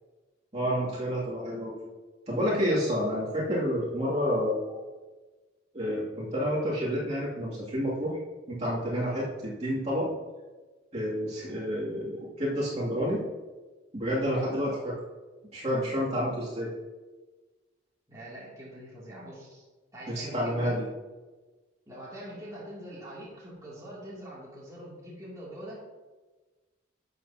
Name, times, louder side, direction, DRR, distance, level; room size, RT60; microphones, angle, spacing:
voice 1, 0.5-1.7 2.3-4.8 5.7-8.2 8.5-10.1 10.9-13.2 13.9-14.7 15.5-16.7 20.1-20.9, equal, 35° right, -7 dB, 2.6 m, -29 dB
voice 2, 14.4-14.8 16.1-16.5 18.1-19.6 19.9-20.8 21.9-25.9, equal, 20° right, -7 dB, 2.6 m, -44 dB
12.0 x 8.1 x 2.9 m, 1.3 s
head